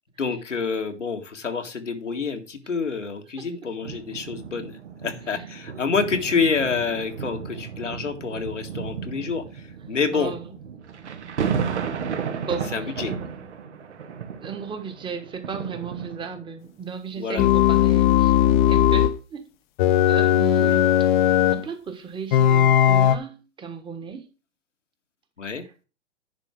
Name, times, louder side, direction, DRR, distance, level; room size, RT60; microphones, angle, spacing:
voice 1, 0.2-10.3 12.7-13.1 17.2-17.5 20.6-20.8 25.4-25.6, left 5 dB, 85° left, 1.9 m, -28 dB
sound 1, 3.8-16.6 17.3-17.4, right 7 dB, 70° right, 1.5 m, -33 dB
voice 2, 10.1-10.4 12.4-12.9 14.4-19.5 20.1-24.3, right 6 dB, 15° right, 1.4 m, -35 dB
sound 2, 17.4-19.2 19.8-21.6 22.3-23.1, left 11 dB, 40° left, 0.8 m, -18 dB
10.5 x 4.6 x 6.2 m
hypercardioid pair, 120°, 36 cm